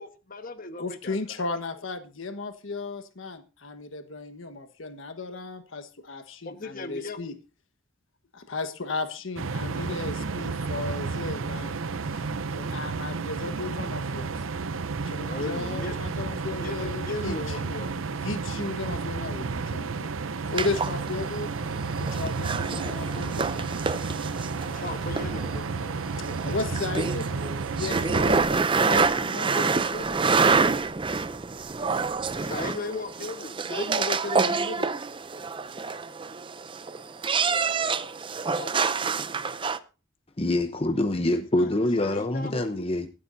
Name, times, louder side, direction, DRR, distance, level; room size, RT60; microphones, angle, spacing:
voice 1, 0.0-1.4 6.4-7.2 15.3-15.9 16.5-18.0 24.6-26.4 32.4-33.6 38.5-39.2 41.6-41.7 42.0-42.7, left 3 dB, 45° left, 1.3 m, -37 dB
voice 2, 0.8-7.4 8.3-11.8 12.1-12.2 12.5-14.3 15.0-17.7 18.2-20.1 20.4-21.5 22.0-24.1 26.2-27.4 27.7-30.5 33.7-34.9, left 3 dB, 75° left, 1.4 m, -35 dB
sound 1, 9.4-28.4, right 4 dB, 80° right, 0.6 m, -32 dB
sound 2, 20.6-39.8, right 4 dB, 25° right, 0.5 m, -27 dB
voice 3, 40.4-43.1, left 1 dB, 30° left, 0.7 m, -25 dB
24.5 x 8.4 x 2.7 m
head